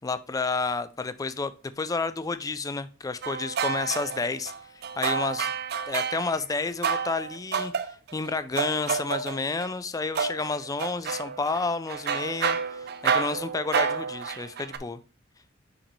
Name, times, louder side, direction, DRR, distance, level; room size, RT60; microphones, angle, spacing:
voice 1, 0.0-4.5 5.0-5.5 5.9-15.0, left 3 dB, 20° left, 13 dB, 0.4 m, -30 dB
sound 1, 3.2-6.3 6.8-9.7 10.2-14.8, right 6 dB, 55° right, 0.5 m, -30 dB
5.9 x 5.1 x 3.1 m, 0.34 s
head